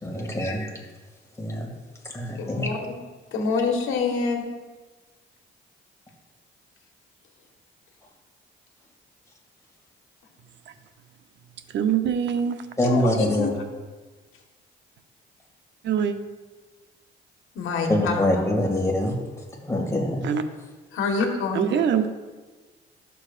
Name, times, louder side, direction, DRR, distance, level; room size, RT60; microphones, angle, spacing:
voice 1, 0.0-0.7 1.4-1.7 2.1-2.7 12.8-13.5 17.9-19.2 19.5-20.2, left 1 dB, 15° left, -1 dB, 2.2 m, -24 dB
voice 2, 2.4-2.8 3.3-4.4 12.8-13.0 13.3-13.5 17.5-18.2 20.9-21.6, left 4 dB, 90° left, 2 dB, 1.4 m, -26 dB
voice 3, 11.7-12.6 15.8-16.2 20.2-20.4 21.5-22.1, right 8 dB, 65° right, 8 dB, 0.7 m, -23 dB
12.5 x 7.0 x 2.5 m, 1.3 s
cardioid pair, 90°, 20 cm